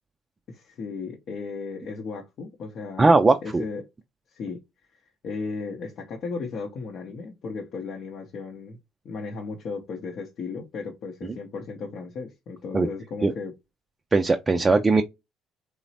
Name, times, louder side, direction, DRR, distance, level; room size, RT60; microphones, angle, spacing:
voice 1, 0.5-3.0 3.4-3.8 4.3-4.6 4.9-8.8 9.0-13.5 14.6-14.7, left 4 dB, 60° left, 0.6 m, -35 dB
voice 2, 3.0-3.6 12.7-12.9 13.2-13.3 14.1-15.0, right 3 dB, 25° right, 0.3 m, -19 dB
3.0 x 2.0 x 2.7 m
hypercardioid pair, 60°, 0 cm